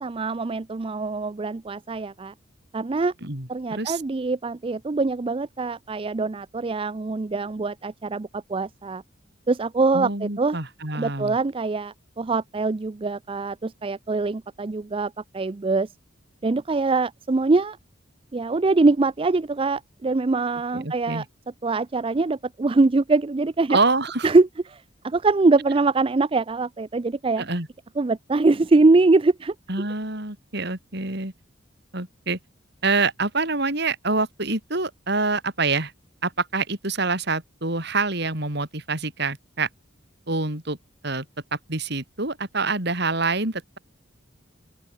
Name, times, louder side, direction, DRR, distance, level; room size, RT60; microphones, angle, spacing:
voice 1, 0.0-2.3 2.7-3.1 3.5-9.0 9.5-10.6 10.9-15.9 16.4-17.8 18.3-21.2 21.6-23.8 24.2-27.5 27.9-29.9, right 3 dB, 30° right, 0.4 m, -23 dB
voice 2, 3.2-4.0 9.9-11.4 20.7-21.2 23.7-24.3 27.4-27.7 29.7-31.3 31.9-32.4 32.8-35.9 36.2-39.7 40.3-40.8 41.0-41.3 41.7-43.8, right 3 dB, 60° right, 5.4 m, -26 dB
open air
head